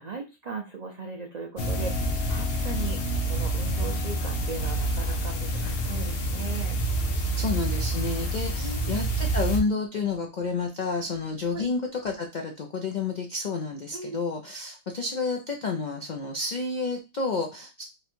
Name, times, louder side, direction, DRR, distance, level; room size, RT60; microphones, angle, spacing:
voice 1, 0.0-6.8 8.6-9.0 11.5-11.7 13.9-14.2, right 4 dB, 85° right, 2 dB, 0.3 m, -38 dB
sound 1, 1.6-9.6, right 1 dB, 50° left, 0.8 m, -28 dB
voice 2, 7.3-17.8, left 4 dB, 85° left, 2 dB, 0.4 m, -30 dB
3.1 x 2.6 x 4.3 m, 0.28 s
omnidirectional pair, 1.5 m